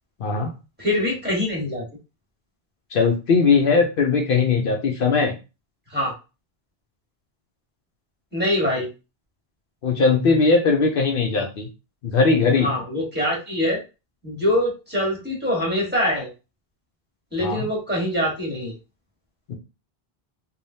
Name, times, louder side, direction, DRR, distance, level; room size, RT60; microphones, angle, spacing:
voice 1, 0.2-0.5 2.9-5.3 9.8-11.7 12.0-12.8 17.4-17.7 19.5-19.6, left 4 dB, 65° left, 1 dB, 0.7 m, -19 dB
voice 2, 0.8-1.8 5.9-6.1 8.3-8.9 12.6-13.8 14.2-16.3 17.3-18.7, left 1 dB, 10° right, -5 dB, 1.3 m, -24 dB
3.3 x 2.3 x 2.7 m, 0.30 s
omnidirectional pair, 1.0 m